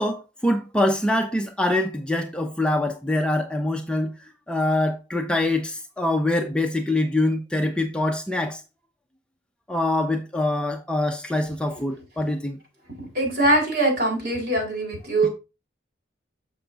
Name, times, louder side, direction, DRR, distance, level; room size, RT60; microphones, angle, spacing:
voice 1, 0.0-4.1 4.5-8.6 9.7-12.6, left 1 dB, 5° left, 0.5 m, -24 dB
voice 2, 13.0-15.3, right 1 dB, 55° right, 4.3 m, -22 dB
6.9 x 5.8 x 3.9 m
head